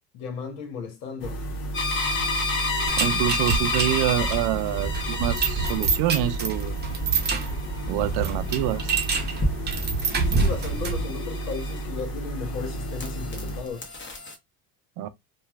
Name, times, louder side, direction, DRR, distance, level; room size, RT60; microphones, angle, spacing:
voice 1, 0.1-1.4 10.1-13.9, left 5 dB, 85° left, 1.1 m, -35 dB
sound 1, 1.2-13.6, right 1 dB, 60° left, 1.2 m, -33 dB
sound 2, 1.7-12.2 12.6-14.4, left 3 dB, 25° left, 1.0 m, -31 dB
sound 3, 2.9-11.1, right 5 dB, 25° right, 0.7 m, -27 dB
voice 2, 3.0-6.8 7.9-8.9 15.0-15.1, right 14 dB, 60° right, 0.5 m, -26 dB
3.0 x 2.4 x 2.3 m
supercardioid pair, 95°, 44 cm